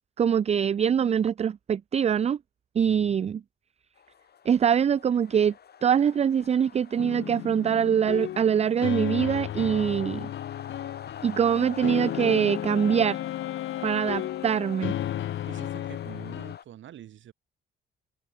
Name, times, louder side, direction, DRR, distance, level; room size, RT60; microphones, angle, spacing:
voice 1, 0.2-2.4 2.8-3.4 4.5-5.5 5.8-10.3 11.2-13.2 13.8-14.9, right 8 dB, 35° right, 0.4 m, -24 dB
voice 2, 2.8-3.3 15.5-17.3, right 11 dB, 70° right, 6.5 m, -46 dB
sound 1, 4.0-16.6, left 8 dB, 55° left, 5.2 m, -46 dB
sound 2, 7.0-16.6, left 12 dB, 75° left, 2.9 m, -35 dB
Wind instrument woodwind instrument, 11.2-15.5, left 15 dB, 90° left, 5.3 m, -37 dB
cardioid pair, 90°, 20 cm